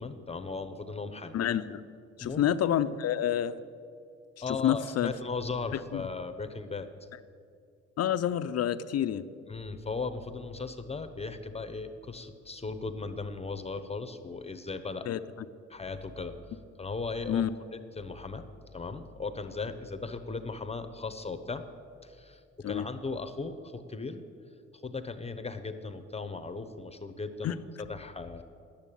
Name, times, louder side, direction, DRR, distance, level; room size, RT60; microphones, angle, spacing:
voice 1, 0.0-1.4 2.2-2.5 4.4-6.9 9.5-15.1 15.7-16.3 16.8-18.4 18.7-21.6 22.0-22.4 22.7-24.2 24.8-28.4, left 4 dB, 20° left, 9 dB, 0.8 m, -37 dB
voice 2, 1.3-1.8 2.2-3.6 4.5-5.1 5.9-6.0 8.0-9.2 15.1-15.2 17.3-17.5 22.6-22.9 27.4-27.6, left 10 dB, 55° left, 13 dB, 0.6 m, -28 dB
10.0 x 8.5 x 9.0 m, 2.4 s
cardioid pair, 90°, 30 cm